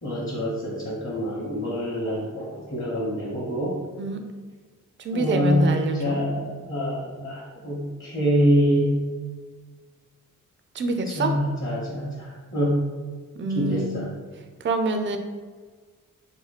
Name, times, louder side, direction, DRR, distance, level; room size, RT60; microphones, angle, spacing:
voice 1, 0.0-3.8 5.1-9.0 11.1-12.8 13.5-14.1, equal, 35° left, -5 dB, 1.0 m, -25 dB
voice 2, 5.0-6.2 10.7-11.3 13.4-14.0 14.6-15.2, right 2 dB, 35° right, 6 dB, 0.4 m, -26 dB
2.8 x 2.2 x 4.0 m, 1.4 s
cardioid pair, 60°, 34 cm